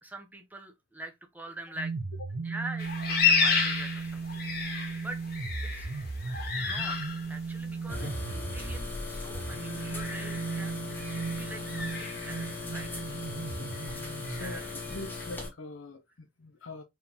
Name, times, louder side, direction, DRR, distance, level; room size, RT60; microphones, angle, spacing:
voice 1, 0.0-2.0 2.4-5.2 5.6-5.9 6.6-10.8 11.0-12.9 14.4-14.7, right 1 dB, 10° right, 0.8 m, -44 dB
sound 1, 1.8-14.6, right 4 dB, 65° right, 0.7 m, -36 dB
sound 2, 2.8-15.3, left 5 dB, 50° left, 1.2 m, -33 dB
sound 3, 7.9-15.5, left 4 dB, 10° left, 1.4 m, -39 dB
voice 2, 14.3-14.6 14.9-16.8, left 2 dB, 85° left, 0.6 m, -43 dB
4.4 x 3.6 x 2.8 m
head